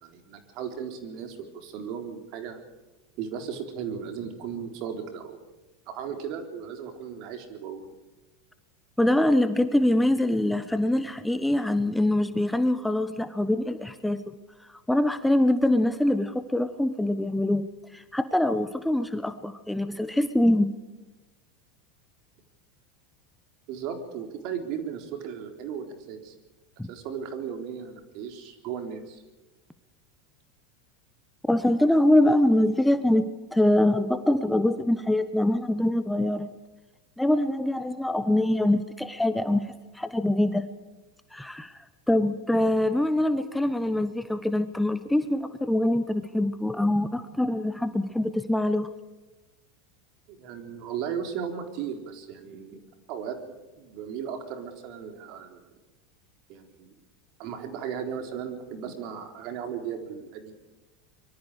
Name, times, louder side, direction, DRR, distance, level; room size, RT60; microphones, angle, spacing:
voice 1, 0.0-2.6 3.2-5.4 5.9-7.9 23.7-26.3 26.9-29.2 50.3-52.8 53.1-53.4 53.8-55.6 56.5-57.0 57.4-60.5, right 7 dB, 55° right, 5 dB, 4.0 m, -36 dB
voice 2, 9.0-14.3 14.9-17.7 17.9-20.7 26.8-26.9 31.5-33.3 33.5-36.5 37.2-39.7 39.9-40.6 41.3-41.7 42.1-48.9, left 1 dB, 5° left, 11 dB, 1.3 m, -24 dB
25.0 x 23.0 x 5.0 m, 1.2 s
hypercardioid pair, 85°, 0 cm